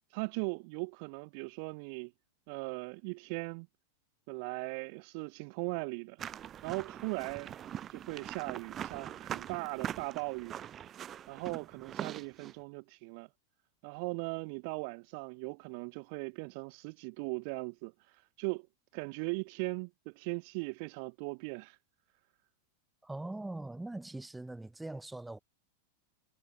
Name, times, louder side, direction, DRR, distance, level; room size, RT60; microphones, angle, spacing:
voice 1, 0.1-2.1 2.5-3.7 4.3-6.2 6.6-7.5 7.9-10.5 11.3-13.3 13.8-18.7 18.9-21.8, right 35 dB, 45° right, 0.8 m, -39 dB
sound 1, 6.2-12.5, right 10 dB, 25° right, 1.1 m, -42 dB
voice 2, 23.0-25.4, right 2 dB, 5° right, 6.4 m, -42 dB
figure-of-eight pair, 90°, 0 cm